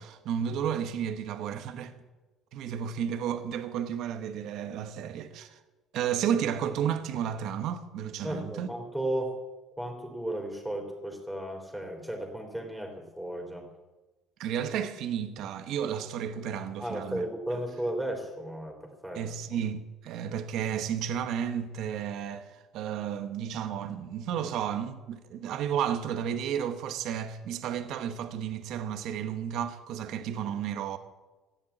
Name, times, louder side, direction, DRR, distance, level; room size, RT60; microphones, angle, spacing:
voice 1, 0.0-1.9 2.5-5.6 5.9-8.7 14.4-17.2 19.1-31.0, right 8 dB, 65° right, 1.2 m, -32 dB
voice 2, 8.2-9.3 9.8-13.7 16.8-19.2, right 1 dB, 5° right, 3.7 m, -34 dB
15.0 x 10.5 x 8.6 m
cardioid pair, 140°, 0 cm